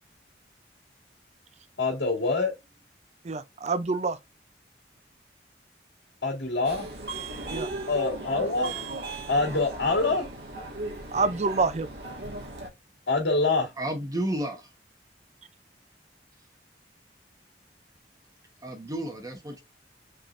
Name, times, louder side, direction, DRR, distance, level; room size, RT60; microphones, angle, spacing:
voice 1, 1.8-2.5 6.2-6.9 7.9-8.7 9.3-10.3 13.1-13.7, left 3 dB, 85° left, 2.3 m, -25 dB
voice 2, 3.2-4.2 7.5-7.7 11.1-11.9, right 4 dB, 40° right, 0.5 m, -27 dB
Subway metro underground, 6.6-12.7, right 2 dB, 70° right, 1.8 m, -37 dB
voice 3, 13.8-14.7 18.6-19.6, right 1 dB, 20° right, 1.1 m, -32 dB
5.2 x 3.6 x 2.6 m
head